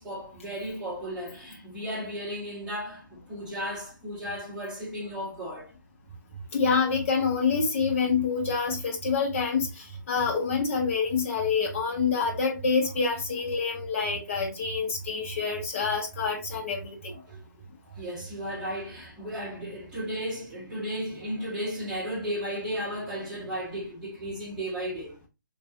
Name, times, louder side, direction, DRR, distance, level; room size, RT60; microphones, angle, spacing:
voice 1, 0.0-5.7 17.1-17.5 17.8-25.3, equal, 5° right, 1.7 m, -35 dB
voice 2, 6.5-17.1, left 5 dB, 40° left, 1.6 m, -27 dB
4.4 x 3.0 x 2.7 m
figure-of-eight pair, 145°, 11 cm